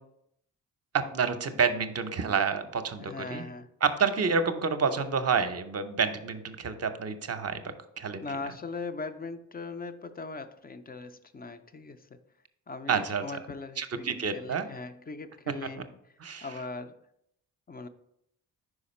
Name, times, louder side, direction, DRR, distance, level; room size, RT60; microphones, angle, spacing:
voice 1, 0.9-3.4 3.8-8.2 12.9-13.2 13.8-14.7 15.6-15.7 16.2-16.5, right 5 dB, 40° right, 0.7 m, -29 dB
voice 2, 3.0-3.7 8.2-12.2 12.7-15.9 16.4-17.0 17.7-17.9, left 3 dB, 25° left, 0.4 m, -40 dB
4.9 x 4.9 x 4.2 m
cardioid pair, 75°, 40 cm